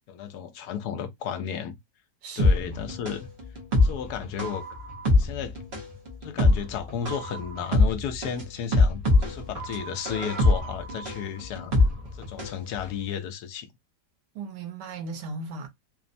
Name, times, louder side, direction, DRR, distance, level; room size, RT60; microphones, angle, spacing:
voice 1, 0.1-1.8 2.4-3.3 3.8-4.6 5.1-5.6 6.2-11.7 12.1-13.7, left 8 dB, 75° left, 1.1 m, -33 dB
voice 2, 2.2-2.8 14.3-15.7, right 4 dB, 85° right, 1.3 m, -37 dB
sound 1, 2.4-12.6 12.9-13.0, left 2 dB, 45° right, 0.8 m, -23 dB
3.1 x 2.0 x 2.5 m
omnidirectional pair, 1.8 m